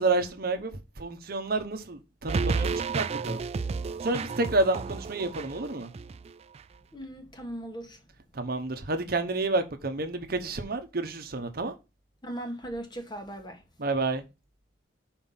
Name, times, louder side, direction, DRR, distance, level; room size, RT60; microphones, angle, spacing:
voice 1, 0.0-3.4 4.0-5.9 8.3-11.7 13.8-14.2, right 2 dB, 55° right, 0.9 m, -29 dB
sound 1, 2.3-6.3 6.5-6.6, right 4 dB, 35° right, 0.3 m, -31 dB
voice 2, 6.9-8.0 12.2-13.6, right 1 dB, 25° left, 1.4 m, -38 dB
5.7 x 4.4 x 5.6 m
head